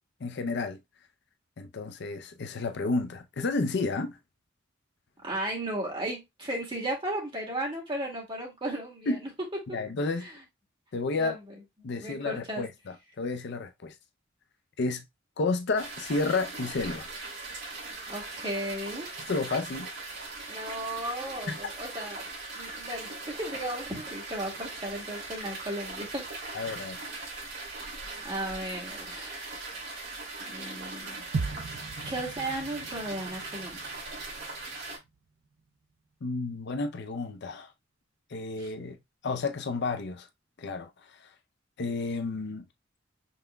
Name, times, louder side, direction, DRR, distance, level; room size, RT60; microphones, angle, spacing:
voice 1, 0.2-0.8 1.6-4.2 9.1-9.2 9.7-10.3 10.9-11.4 11.8-13.9 14.8-15.0 15.4-17.1 19.3-19.9 21.5-21.6 26.5-27.0 36.2-37.7 38.3-39.0 39.2-40.3 40.6-41.3 41.8-42.6, left 3 dB, 60° left, 0.5 m, -31 dB
voice 2, 5.2-9.3 9.7-9.8 10.2-10.3 11.1-11.4 11.8-12.7 18.1-19.1 20.5-22.3 22.6-27.1 28.2-29.6 30.4-31.3 32.1-34.0 38.6-38.7, right 1 dB, 25° right, 2.1 m, -35 dB
sound 1, 15.7-35.0, right 3 dB, 60° right, 2.9 m, -40 dB
sound 2, 31.3-35.3 35.6-35.7, right 4 dB, 85° right, 0.5 m, -38 dB
5.5 x 3.4 x 2.2 m
head